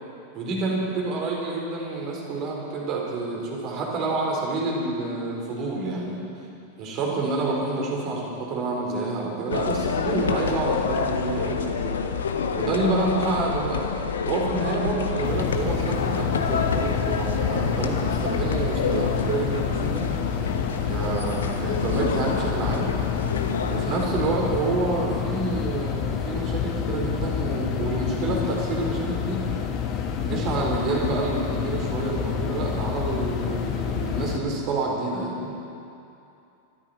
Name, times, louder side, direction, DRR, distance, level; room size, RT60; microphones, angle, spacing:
voice 1, 0.3-6.3 6.8-12.0 12.5-13.8 14.3-20.1 20.9-22.9 23.7-29.4 30.2-35.5, right 3 dB, 40° right, -2 dB, 4.4 m, -28 dB
sound 1, 9.5-24.7, left 6 dB, 65° left, 1.1 m, -28 dB
sound 2, 15.2-34.4, left 7 dB, 35° left, 1.5 m, -28 dB
24.5 x 13.0 x 4.4 m, 2.7 s
figure-of-eight pair, 90°, 0 cm